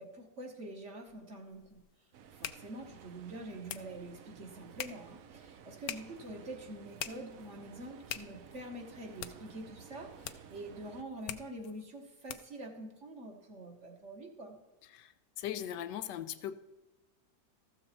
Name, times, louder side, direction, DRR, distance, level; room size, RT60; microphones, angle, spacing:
voice 1, 0.0-1.8 2.3-14.6, right 1 dB, 45° right, 3 dB, 1.4 m, -46 dB
sound 1, 1.1-12.7, left 11 dB, 70° left, 0.9 m, -47 dB
sound 2, 2.1-11.0, right 8 dB, 65° right, 0.9 m, -54 dB
voice 2, 14.8-16.6, left 10 dB, 90° left, 11 dB, 1.3 m, -40 dB
13.5 x 7.0 x 4.3 m, 1.1 s
omnidirectional pair, 1.8 m